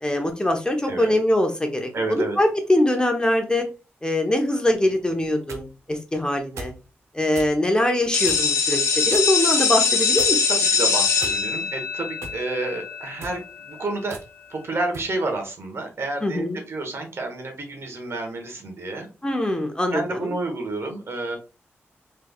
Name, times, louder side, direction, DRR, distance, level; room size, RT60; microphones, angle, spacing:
voice 1, 0.0-3.7 4.0-6.7 7.1-10.4 16.2-16.6 19.2-20.3, left 1 dB, 15° left, 4 dB, 0.9 m, -23 dB
voice 2, 1.9-2.4 10.7-14.2 14.5-19.1 19.9-21.4, right 2 dB, 65° right, 4 dB, 1.1 m, -30 dB
sound 1, 5.1-5.7 6.6-6.8 7.3-7.5 8.2-8.6 9.1-9.3 10.2-10.6 11.2-11.7 12.2-12.4 13.1-13.4 14.1-14.3 14.9-15.1, right 3 dB, 80° right, 0.7 m, -38 dB
sound 2, 8.1-13.8, left 5 dB, 90° left, 0.7 m, -22 dB
3.4 x 3.3 x 2.3 m, 0.31 s
cardioid pair, 50°, 5 cm